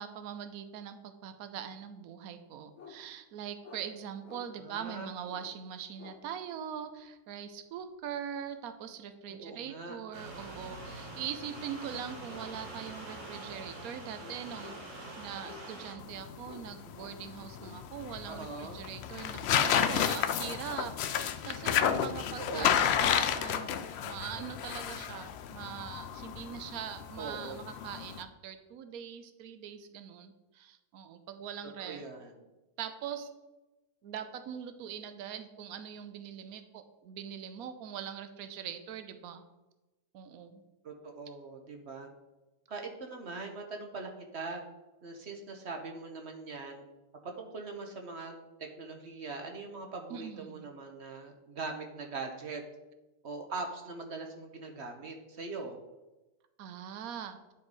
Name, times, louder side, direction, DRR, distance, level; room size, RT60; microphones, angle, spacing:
voice 1, 0.0-14.7 15.2-32.0 32.8-33.3 34.0-39.4 40.1-40.6 50.1-50.7 56.6-57.4, right 8 dB, 70° right, 9 dB, 1.1 m, -42 dB
sound 1, 2.8-3.0 3.6-3.8 4.2-4.4 5.2-5.5 6.0-6.2 8.2-8.4 11.3-11.4 12.2-12.5 12.8-12.9 13.3-13.6 14.2-14.9 15.4-15.9 16.4-16.7 16.9-17.8, left 6 dB, 50° left, 1.3 m, -51 dB
voice 2, 4.6-5.1 9.3-10.0 18.2-18.8 22.4-22.9 27.2-27.5 31.8-32.3 40.8-42.1 42.7-44.6 45.0-46.8 47.2-52.6 53.2-55.8, right 3 dB, 50° right, 3 dB, 1.1 m, -41 dB
sound 2, 10.1-15.9, right 1 dB, 90° right, 3.0 m, -44 dB
sound 3, 16.0-28.2, left 9 dB, 90° left, 0.5 m, -31 dB
9.7 x 4.6 x 4.7 m, 1.1 s
omnidirectional pair, 1.7 m